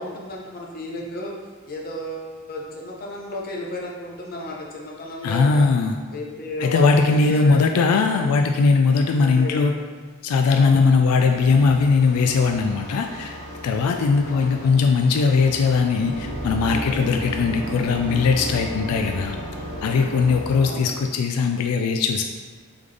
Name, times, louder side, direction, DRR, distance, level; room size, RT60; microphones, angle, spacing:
voice 1, 0.0-1.3 1.7-5.7 6.1-7.6 8.1-8.6 9.2-9.8 10.5-11.1 14.2-14.7 20.6-21.1, left 2 dB, 40° left, -2 dB, 0.7 m, -33 dB
voice 2, 5.2-6.0 6.6-9.7 10.2-13.4 13.6-19.4 19.8-22.2, left 4 dB, 90° left, 4 dB, 0.3 m, -19 dB
sound 1, 11.3-20.7, equal, 70° right, 1.2 m, -34 dB
3.7 x 3.5 x 3.3 m, 1.4 s
head